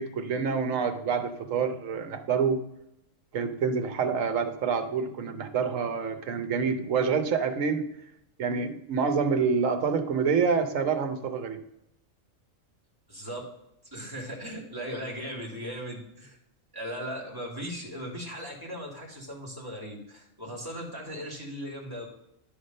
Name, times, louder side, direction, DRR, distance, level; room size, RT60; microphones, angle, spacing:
voice 1, 0.0-2.6 3.3-7.9 8.4-11.6, right 5 dB, 70° right, 8 dB, 1.2 m, -27 dB
voice 2, 13.1-13.4 13.9-16.4 16.7-22.1, equal, 15° right, -2 dB, 2.1 m, -38 dB
10.5 x 3.6 x 5.2 m, 0.84 s
omnidirectional pair, 1.4 m